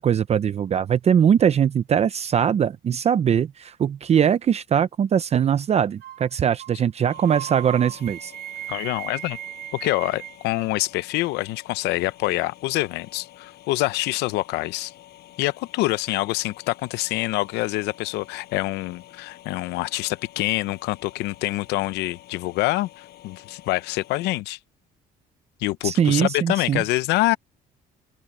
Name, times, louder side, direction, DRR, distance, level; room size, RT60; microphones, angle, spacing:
voice 1, 0.0-8.3 25.8-26.8, right 8 dB, 40° right, 0.7 m, -21 dB
sound 1, 6.0-6.3 6.6-6.8 7.1-10.4, right 12 dB, 70° right, 4.5 m, -36 dB
sound 2, 7.1-24.4, left 14 dB, 75° left, 6.1 m, -49 dB
voice 2, 8.7-9.4 9.7-14.9 15.4-24.6 25.6-27.4, left 18 dB, 90° left, 0.7 m, -26 dB
open air
cardioid pair, 110°, 17 cm